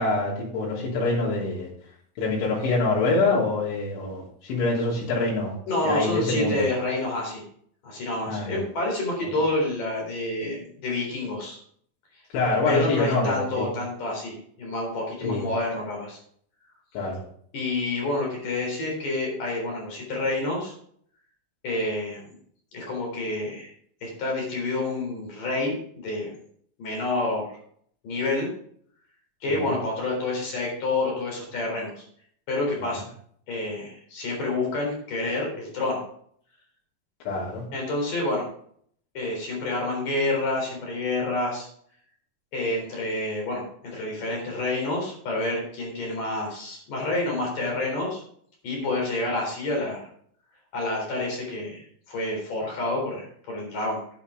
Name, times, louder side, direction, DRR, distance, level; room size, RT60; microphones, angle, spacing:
voice 1, 0.0-1.7 2.2-5.5 5.9-6.6 8.3-8.6 12.3-13.7 15.2-15.4 16.9-17.2 29.5-29.7 32.8-32.9 37.3-37.6, left 3 dB, 80° left, -5 dB, 5.4 m, -25 dB
voice 2, 5.7-7.4 7.8-11.6 12.7-16.2 17.5-20.7 21.6-22.2 22.7-23.7 24.0-26.3 26.8-27.5 28.0-28.5 29.4-32.0 32.5-33.1 33.5-36.0 37.7-38.4 39.1-41.7 42.5-48.2 48.6-50.1 50.7-54.0, left 2 dB, 45° left, -1 dB, 5.2 m, -28 dB
9.5 x 9.2 x 4.9 m, 0.62 s
omnidirectional pair, 5.4 m